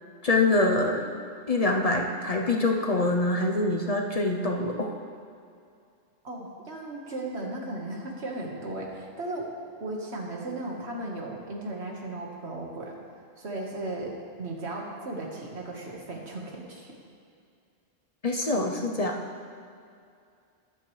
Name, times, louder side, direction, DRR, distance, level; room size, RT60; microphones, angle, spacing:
voice 1, 0.2-1.0 1.5-4.9 18.2-19.2, left 2 dB, 40° left, 2 dB, 0.8 m, -25 dB
voice 2, 6.2-9.5 9.8-13.0 13.4-17.0, right 2 dB, 80° right, -1 dB, 1.8 m, -36 dB
13.0 x 11.0 x 3.2 m, 2.4 s
omnidirectional pair, 1.1 m